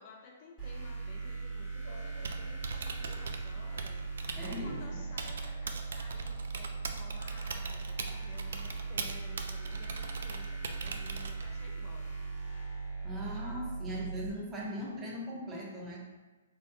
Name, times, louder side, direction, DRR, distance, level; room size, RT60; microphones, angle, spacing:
voice 1, 0.0-12.6, left 3 dB, 35° left, 0 dB, 0.4 m, -54 dB
sound 1, 0.6-14.3, right 4 dB, 10° left, 1.2 m, -39 dB
Laughter, 1.7-3.4 4.4-5.6, equal, 70° left, 1.0 m, -55 dB
Typing, 2.1-11.7, right 4 dB, 70° right, 0.3 m, -42 dB
voice 2, 4.4-5.0 13.0-16.0, equal, 15° right, -3 dB, 0.6 m, -39 dB
3.3 x 2.2 x 2.7 m, 1.2 s
hypercardioid pair, 140°, 0 cm